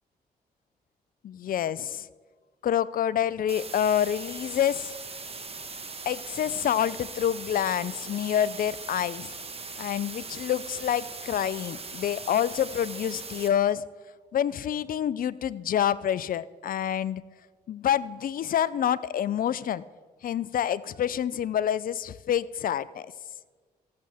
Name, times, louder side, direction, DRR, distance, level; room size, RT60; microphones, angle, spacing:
voice 1, 1.2-2.1 2.6-4.9 6.1-9.3 9.8-13.8 14.3-17.2 17.7-19.8 20.2-23.1, left 10 dB, 55° left, 19 dB, 0.4 m, -27 dB
sound 1, 3.5-13.5, right 4 dB, 35° right, 1.2 m, -40 dB
13.5 x 7.5 x 3.5 m, 1.5 s
supercardioid pair, 45°, 17 cm